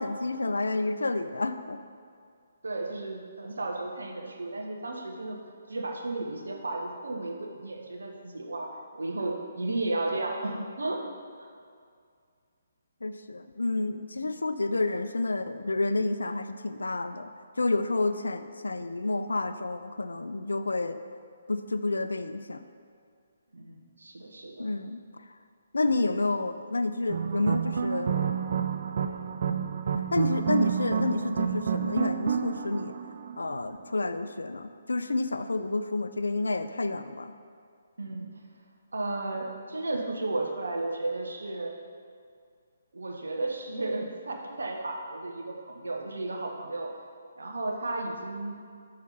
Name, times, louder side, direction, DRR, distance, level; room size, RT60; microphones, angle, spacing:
voice 1, 0.0-1.8 13.0-17.3 17.6-21.0 21.5-22.6 24.6-25.0 25.7-28.3 30.1-32.9 33.4-37.3, left 2 dB, 80° left, 10 dB, 0.4 m, -29 dB
voice 2, 2.6-5.4 5.7-11.0 23.5-24.7 30.3-30.5 38.0-38.3 38.9-41.7 42.9-46.9 47.4-48.5, right 2 dB, 75° right, 1 dB, 1.1 m, -33 dB
sound 1, 27.1-33.7, right 7 dB, 55° right, 0.4 m, -29 dB
6.4 x 4.7 x 5.5 m, 2.2 s
figure-of-eight pair, 140°, 0 cm